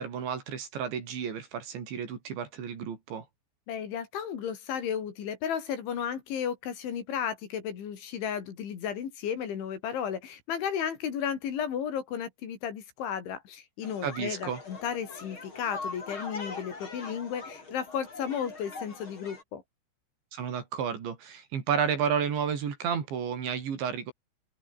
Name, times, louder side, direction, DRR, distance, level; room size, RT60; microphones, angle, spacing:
voice 1, 0.0-3.3 14.0-14.6 20.3-24.1, right 7 dB, 65° right, 6.0 m, -31 dB
voice 2, 3.7-19.6, left 8 dB, 70° left, 5.7 m, -34 dB
sound 1, 13.8-19.4, left 3 dB, 25° left, 5.3 m, -42 dB
open air
omnidirectional pair, 5.7 m